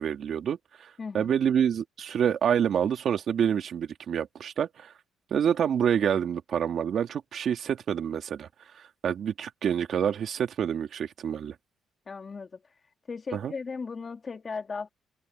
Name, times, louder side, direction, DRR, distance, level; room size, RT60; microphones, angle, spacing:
voice 1, 0.0-4.9 5.3-8.5 9.0-11.5 13.3-13.5, right 8 dB, 60° right, 2.7 m, -27 dB
voice 2, 1.0-1.3 12.1-12.5 13.1-14.9, left 5 dB, 35° left, 2.6 m, -36 dB
cardioid pair, 90°, 0 cm